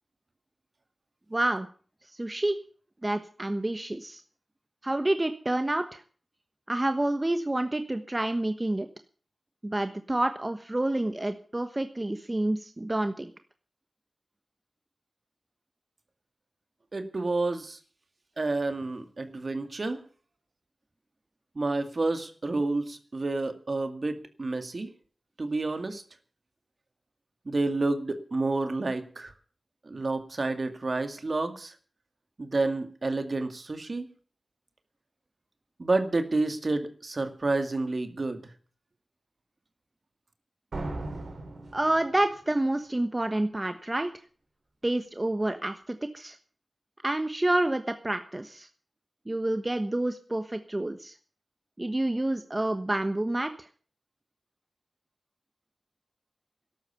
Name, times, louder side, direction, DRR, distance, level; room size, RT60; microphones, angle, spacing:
voice 1, 1.3-1.7 2.1-2.6 3.0-4.2 4.8-6.0 6.7-8.9 9.6-13.3 41.7-44.1 44.8-46.4 47.0-48.7 49.3-51.1 51.8-53.7, right 1 dB, 25° right, 8 dB, 1.2 m, -28 dB
voice 2, 16.9-17.8 18.4-20.0 21.6-24.9 25.4-26.0 27.5-29.3 29.8-31.7 32.4-34.1 35.8-38.4, right 2 dB, 55° right, 7 dB, 2.2 m, -29 dB
sound 1, 40.7-42.5, right 2 dB, 80° right, 3.9 m, -37 dB
13.0 x 12.0 x 7.0 m, 0.41 s
wide cardioid pair, 60°, 0 cm